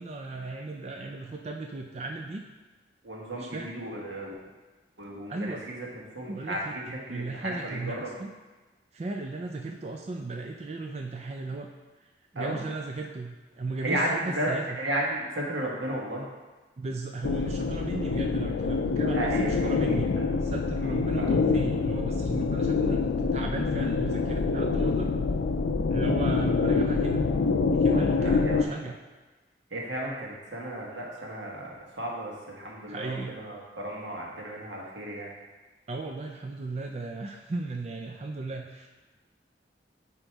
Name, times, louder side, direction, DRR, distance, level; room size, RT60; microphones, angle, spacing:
voice 1, 0.0-2.4 3.3-3.7 5.3-5.6 6.3-8.3 8.9-11.7 12.3-14.8 16.8-20.1 20.4-25.1 25.9-27.3 27.7-29.0 32.9-33.3 35.9-38.9, right 3 dB, 35° right, 2 dB, 0.4 m, -36 dB
voice 2, 3.0-4.3 5.0-5.9 6.1-8.1 12.3-12.6 13.8-16.3 19.1-20.2 20.8-21.3 28.2-28.8 29.7-35.3, right 1 dB, 90° right, -3 dB, 1.5 m, -34 dB
sound 1, 17.2-28.6, left 4 dB, 90° left, 0.4 m, -26 dB
8.9 x 3.0 x 4.6 m, 1.3 s
head